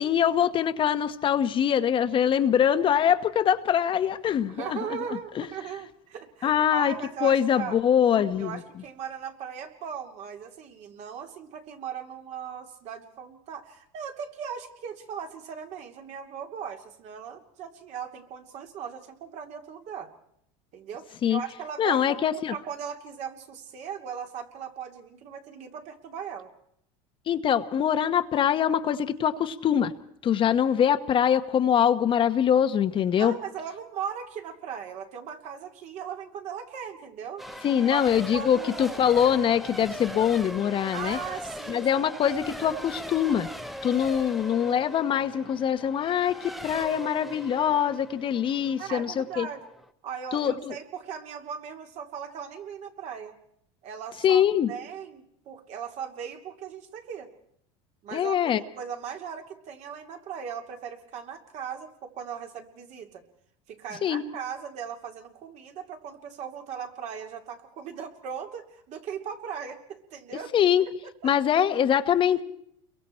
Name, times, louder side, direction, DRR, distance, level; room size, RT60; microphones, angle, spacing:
voice 1, 0.0-4.8 5.4-5.5 6.4-6.9 7.2-8.5 21.2-21.4 21.8-22.5 27.3-29.9 30.2-33.3 37.6-41.2 41.7-43.5 43.8-49.5 50.3-50.7 54.2-54.7 58.1-58.6 64.0-64.2 70.5-70.8 71.2-72.4, left 9 dB, 35° left, 9 dB, 1.1 m, -23 dB
voice 2, 4.5-7.8 8.4-20.1 20.7-22.2 22.5-26.5 33.2-37.4 37.8-38.0 38.3-39.0 40.9-41.9 48.8-49.7 50.0-53.3 53.8-57.3 58.0-63.2 63.7-70.5 71.2-71.3, right 7 dB, 55° right, 4 dB, 2.8 m, -38 dB
Race car auto racing / Accelerating revving vroom / Mechanisms, 37.4-49.9, equal, ahead, 0.9 m, -40 dB
29.5 x 23.0 x 4.4 m, 0.71 s
supercardioid pair, 120°, 14 cm